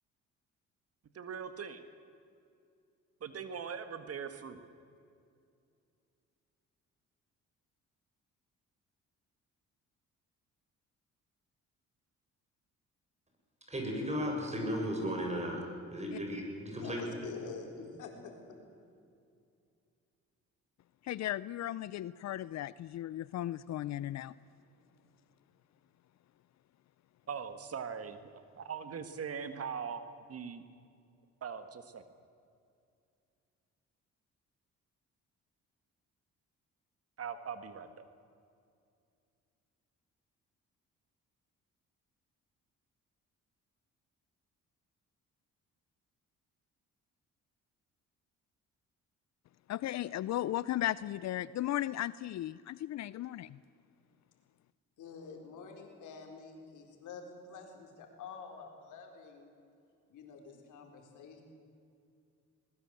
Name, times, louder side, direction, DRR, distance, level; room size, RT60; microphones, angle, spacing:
voice 1, 1.1-1.8 3.2-4.6 27.3-28.2 28.6-30.0 30.3-30.6 31.4-32.0 37.2-38.1, right 6 dB, 50° right, 9 dB, 1.6 m, -41 dB
voice 2, 13.7-15.6 15.9-17.0, equal, 20° right, 1 dB, 7.2 m, -35 dB
voice 3, 16.7-18.3 55.0-59.5 60.1-61.4, left 5 dB, 80° left, 2 dB, 4.3 m, -47 dB
voice 4, 21.0-24.3 49.7-53.6, left 13 dB, 60° left, 18 dB, 0.5 m, -36 dB
21.5 x 21.0 x 7.7 m, 2.4 s
cardioid pair, 90°, 30 cm